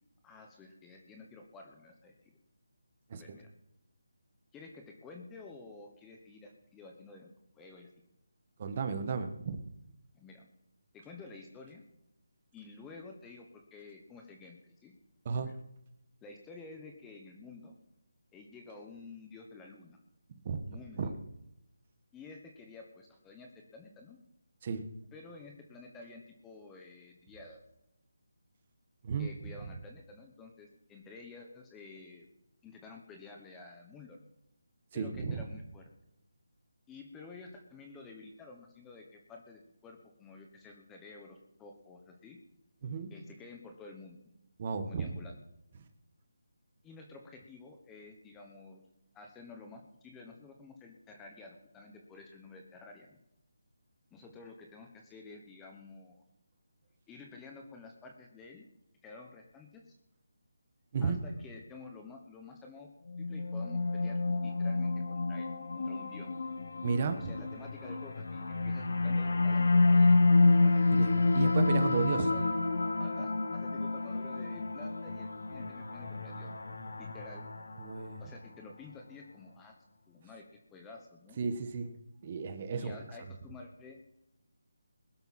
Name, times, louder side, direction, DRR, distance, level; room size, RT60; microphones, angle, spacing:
voice 1, 0.2-2.4 3.1-3.5 4.5-7.9 10.1-10.5 10.9-11.8 12.5-15.0 15.4-15.6 16.2-17.7 18.3-20.0 20.7-21.1 22.1-24.2 25.1-27.6 29.2-32.3 32.6-34.2 34.9-35.9 36.9-42.4 43.1-44.2 44.8-45.4 46.8-48.8 49.1-53.2 54.1-56.2 57.1-58.7 59.0-59.9 61.0-62.9 63.2-66.3 67.2-71.5 72.0-72.5 73.0-76.5 77.0-77.5 78.2-79.8 80.1-81.4 82.7-84.1, left 3 dB, 5° left, 2 dB, 1.1 m, -51 dB
voice 2, 8.6-9.6 15.2-15.5 20.4-20.6 21.0-21.1 24.6-24.8 29.0-29.3 34.9-35.4 42.8-43.1 44.6-45.1 60.9-61.2 66.8-67.3 71.0-72.3 77.8-78.2 81.4-81.9 82.2-82.9, right 5 dB, 25° right, 8 dB, 1.3 m, -33 dB
sound 1, 63.1-78.4, left 3 dB, 65° left, 1.9 m, -29 dB
21.0 x 12.0 x 4.3 m, 0.84 s
figure-of-eight pair, 175°, 0 cm